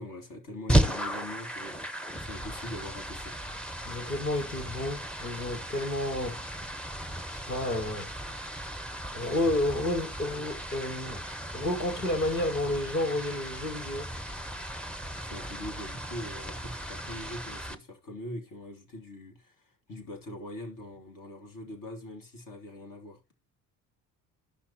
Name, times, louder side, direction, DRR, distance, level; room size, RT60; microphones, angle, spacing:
voice 1, 0.0-3.4 15.2-23.2, left 1 dB, 40° left, 2.4 m, -42 dB
sound 1, 0.7-17.7, right 1 dB, ahead, 0.9 m, -35 dB
voice 2, 3.9-6.4 7.3-8.1 9.1-11.2 11.5-14.1, left 1 dB, 90° left, 1.2 m, -31 dB
12.0 x 5.8 x 2.9 m
figure-of-eight pair, 55°, 48 cm